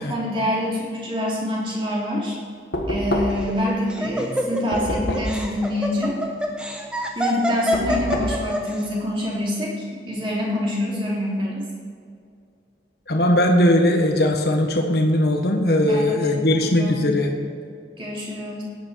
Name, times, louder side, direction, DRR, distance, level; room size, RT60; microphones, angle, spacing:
voice 1, 0.0-2.3 2.9-6.1 7.2-11.6 15.8-16.3 16.6-17.1 18.0-18.6, left 1 dB, 30° right, -5 dB, 3.4 m, -26 dB
Knock, 2.7-3.6 4.7-5.5 7.7-8.5, left 1 dB, 75° left, 1.7 m, -26 dB
Laughter, 3.3-8.8, equal, 5° right, 1.2 m, -26 dB
voice 2, 13.1-17.3, left 1 dB, 60° left, 3 dB, 1.4 m, -19 dB
16.0 x 9.6 x 4.7 m, 2.3 s
head